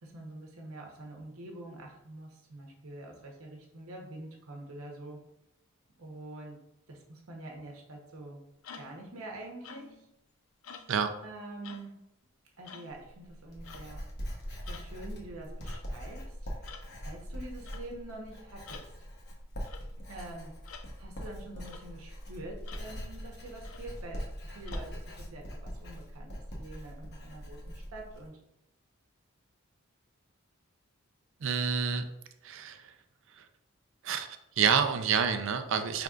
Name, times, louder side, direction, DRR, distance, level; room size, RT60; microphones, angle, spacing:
voice 1, 0.0-5.2 6.0-6.6 6.9-8.4 8.7-10.1 11.2-12.0 12.6-14.0 14.6-18.9 20.0-20.6 21.0-28.4, right 2 dB, 80° right, 0 dB, 0.9 m, -46 dB
sound 1, 8.6-9.0 9.6-10.1 10.6-11.0 11.6-11.9 12.6-12.9 13.6-13.9 14.6-14.9 15.6-15.9 16.6-16.9 17.6-17.9 18.7-18.9 19.6-19.9 20.6-20.9 21.6-21.9 22.6-22.9 23.6-23.9 24.7-24.9, left 6 dB, 75° left, 0.4 m, -49 dB
Writing, 12.9-28.3, equal, 50° left, 0.9 m, -42 dB
voice 2, 31.4-32.0 32.4-32.9 33.4-33.5 34.0-34.3 34.6-36.0, right 7 dB, 60° right, 8 dB, 0.4 m, -28 dB
5.0 x 3.4 x 2.4 m, 0.84 s
head